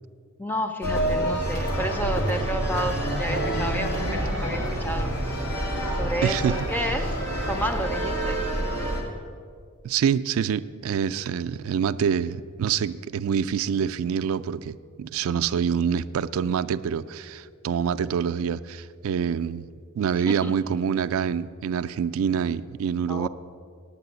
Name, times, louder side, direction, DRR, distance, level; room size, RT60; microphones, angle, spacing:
voice 1, 0.4-5.1 6.0-7.2 7.5-8.4 20.3-20.5 23.1-23.3, right 1 dB, 10° left, 7 dB, 0.5 m, -31 dB
sound 1, 0.8-9.0, right 1 dB, 90° left, 2.2 m, -27 dB
voice 2, 6.2-6.6 9.8-19.7 20.0-23.3, right 7 dB, 65° right, 10 dB, 0.3 m, -26 dB
8.9 x 8.5 x 8.0 m, 2.1 s
head